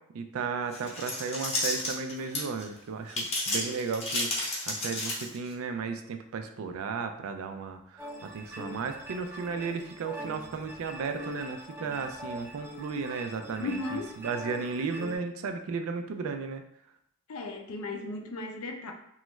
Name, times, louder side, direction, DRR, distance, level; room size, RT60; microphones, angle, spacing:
voice 1, 0.1-16.6, right 5 dB, 70° right, 7 dB, 0.3 m, -35 dB
sound 1, 0.7-2.6 3.1-5.5, left 2 dB, 30° left, 0.8 m, -31 dB
sound 2, 8.0-15.2, equal, 10° right, 0.4 m, -42 dB
voice 2, 13.6-14.2 17.3-18.9, left 2 dB, 80° left, 3 dB, 0.5 m, -35 dB
3.0 x 2.3 x 3.0 m, 0.77 s
head